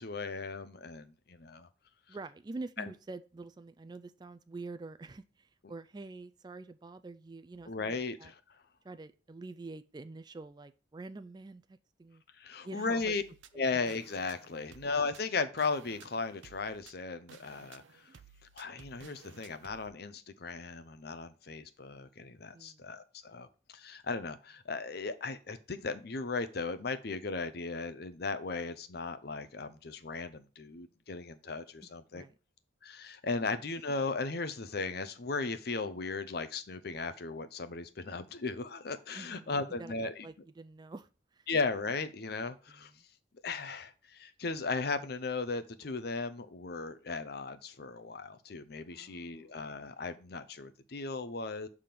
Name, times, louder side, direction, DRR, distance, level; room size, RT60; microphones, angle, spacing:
voice 1, 0.0-1.7 2.8-2.9 7.7-8.4 12.4-13.2 13.6-17.8 18.6-32.2 32.8-40.3 41.5-42.9 43.4-51.7, left 4 dB, 55° left, 0.6 m, -36 dB
voice 2, 2.1-8.3 8.8-12.2 12.6-13.1 22.5-23.0 31.8-32.3 39.1-41.5 42.7-43.0 48.9-49.5, right 3 dB, 20° right, 0.3 m, -47 dB
sound 1, 13.0-19.9, right 6 dB, 80° right, 0.5 m, -57 dB
6.7 x 3.7 x 5.8 m
head